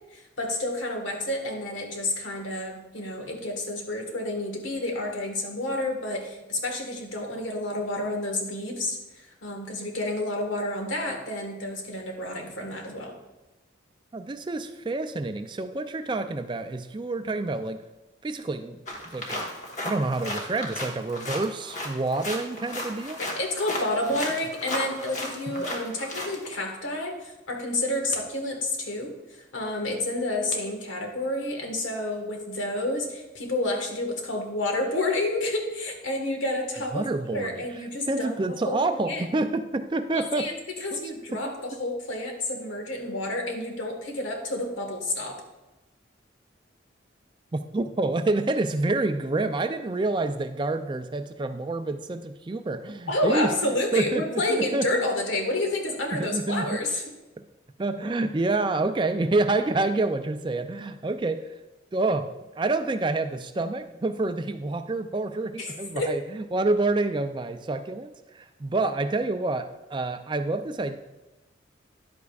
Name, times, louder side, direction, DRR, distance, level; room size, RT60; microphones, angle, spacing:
voice 1, 0.1-13.1 23.2-37.1 37.3-38.3 38.6-39.2 40.1-40.5 40.8-45.4 53.1-57.0 65.6-66.1, left 1 dB, 90° left, 2 dB, 1.6 m, -29 dB
voice 2, 14.1-17.8 18.2-19.5 19.8-23.2 36.9-37.6 38.1-40.5 40.9-41.0 41.3-41.5 47.5-53.5 53.9-54.9 56.2-56.7 57.4-57.5 57.8-61.5 61.9-62.3 62.6-71.0, right 2 dB, 25° right, 9 dB, 0.3 m, -28 dB
sound 1, 18.9-26.5, left 1 dB, 40° left, 1.2 m, -35 dB
10.5 x 8.3 x 2.4 m, 1.0 s
head